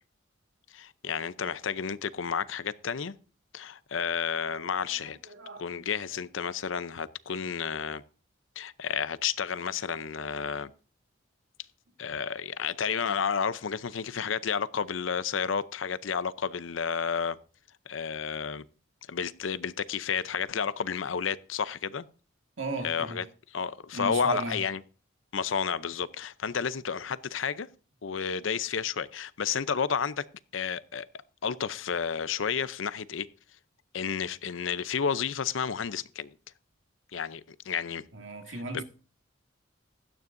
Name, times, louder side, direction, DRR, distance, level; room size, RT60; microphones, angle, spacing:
voice 1, 0.7-3.1 3.5-5.3 5.6-8.0 8.6-10.7 12.0-17.4 17.9-18.7 19.1-22.1 22.8-23.2 23.5-24.8 25.3-27.7 28.0-30.2 30.5-31.1 31.4-33.3 33.9-36.3 37.1-38.1 38.7-38.8, left 6 dB, 90° left, 0.6 m, -31 dB
voice 2, 4.7-6.2 22.6-23.2 23.9-24.6 38.1-38.8, right 3 dB, 80° right, 1.9 m, -37 dB
16.0 x 12.5 x 2.6 m
head